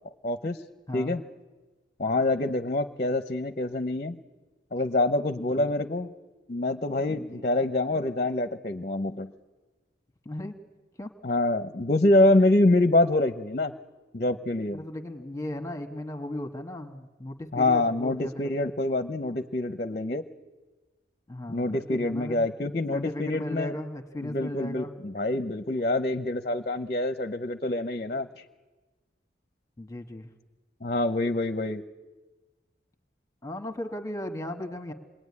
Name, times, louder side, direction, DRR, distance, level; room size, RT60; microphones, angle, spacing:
voice 1, 0.2-0.6 0.9-1.2 2.0-4.2 4.7-6.1 6.5-9.3 11.2-13.7 14.1-14.8 17.5-20.2 21.5-23.7 24.2-28.3 30.8-31.8, left 2 dB, 40° left, 10 dB, 0.8 m, -26 dB
voice 2, 5.3-5.7 7.1-7.4 10.2-10.5 11.0-11.1 14.7-18.5 21.3-22.5 22.9-24.9 29.8-30.3 33.4-34.9, left 1 dB, 20° left, 5 dB, 1.4 m, -36 dB
27.5 x 21.5 x 9.7 m, 1.3 s
head